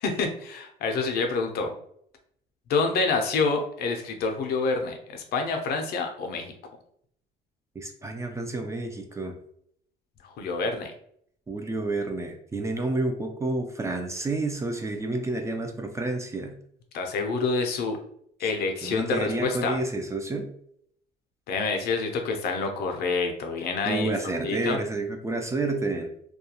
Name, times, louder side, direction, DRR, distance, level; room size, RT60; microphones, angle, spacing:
voice 1, 0.0-1.7 2.7-6.5 10.4-10.9 16.9-18.0 18.4-19.7 21.5-24.1 24.4-24.8, left 4 dB, 70° left, 4 dB, 0.5 m, -27 dB
voice 2, 7.8-9.3 11.5-16.6 18.4-18.5 18.8-20.5 23.8-26.1, right 2 dB, 15° right, 4 dB, 0.3 m, -30 dB
2.3 x 2.2 x 2.8 m, 0.69 s
cardioid pair, 110°, 17 cm